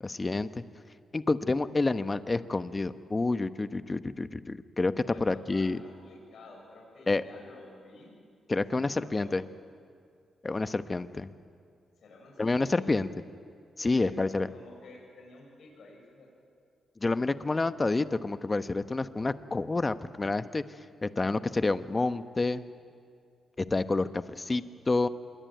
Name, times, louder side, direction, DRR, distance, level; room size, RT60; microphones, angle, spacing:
voice 1, 0.0-0.6 1.1-4.9 5.2-5.8 7.1-7.2 8.5-9.4 10.4-11.3 12.4-13.1 13.8-14.5 17.0-20.6 21.0-22.7 23.6-25.1, left 3 dB, 30° left, 11 dB, 1.1 m, -28 dB
voice 2, 4.9-8.1 8.7-9.3 12.0-12.9 13.8-16.3, left 2 dB, 70° left, 0 dB, 7.4 m, -51 dB
26.0 x 22.0 x 9.2 m, 2.3 s
cardioid pair, 60°, 0 cm